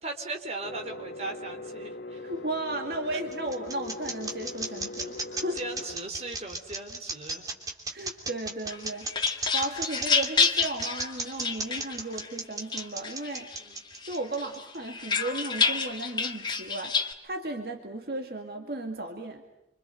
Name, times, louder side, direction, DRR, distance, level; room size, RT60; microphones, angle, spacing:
voice 1, 0.0-2.3 3.1-3.2 5.5-7.4 8.0-8.1 13.6-13.8, right 2 dB, 35° right, 3 dB, 4.0 m, -38 dB
sound 1, 0.6-6.0, left 2 dB, 75° left, 2.4 m, -41 dB
voice 2, 2.2-5.6 7.9-13.5 14.1-17.0 17.2-19.4, right 2 dB, 60° right, 3 dB, 2.2 m, -35 dB
sound 2, 2.9-14.8, right 3 dB, 20° right, 3.1 m, -35 dB
sound 3, 8.7-12.3 12.7-13.6 14.0-17.1, left 5 dB, 25° left, 1.9 m, -28 dB
28.0 x 26.5 x 7.9 m, 0.79 s
head